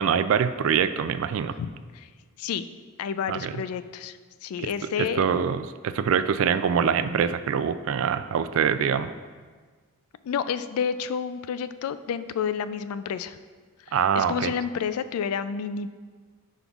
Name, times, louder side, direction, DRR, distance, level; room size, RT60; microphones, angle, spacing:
voice 1, 0.0-1.5 3.3-3.5 5.2-9.1 13.9-14.5, right 7 dB, 70° right, 12 dB, 0.3 m, -24 dB
voice 2, 1.5-2.1 2.4-2.7 3.0-5.2 10.2-13.4 13.8-15.9, left 7 dB, 85° left, 13 dB, 0.3 m, -30 dB
9.8 x 5.2 x 2.4 m, 1.5 s
head